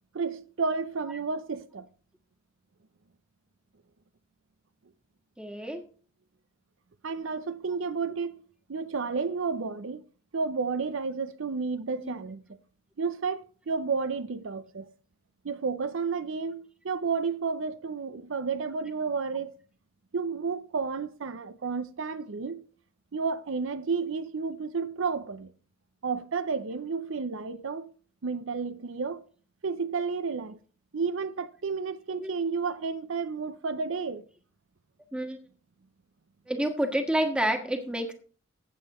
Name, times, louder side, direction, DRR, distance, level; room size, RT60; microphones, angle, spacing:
voice 1, 0.1-1.9 7.0-8.4 8.7-10.0 10.3-12.4 13.0-14.9 15.4-19.5 20.1-22.6 23.1-25.5 26.0-27.9 28.2-29.2 29.6-30.6 30.9-34.2, right 5 dB, 85° right, 0.6 m, -31 dB
voice 2, 5.4-5.8 12.0-12.2 32.2-32.3 35.1-35.4 36.5-38.1, right 1 dB, 5° right, 1.5 m, -29 dB
15.5 x 7.6 x 3.0 m
head